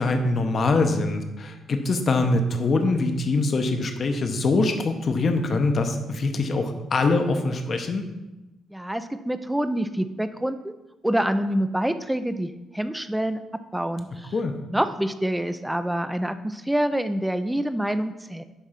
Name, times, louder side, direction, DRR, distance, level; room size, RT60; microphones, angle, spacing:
voice 1, 0.0-8.0 14.3-14.5, left 3 dB, 45° left, 5 dB, 1.0 m, -23 dB
voice 2, 8.7-10.7 11.0-14.3 14.7-18.4, right 1 dB, 5° right, 11 dB, 0.6 m, -26 dB
10.0 x 3.5 x 5.8 m, 1.0 s
cardioid pair, 90°, 0 cm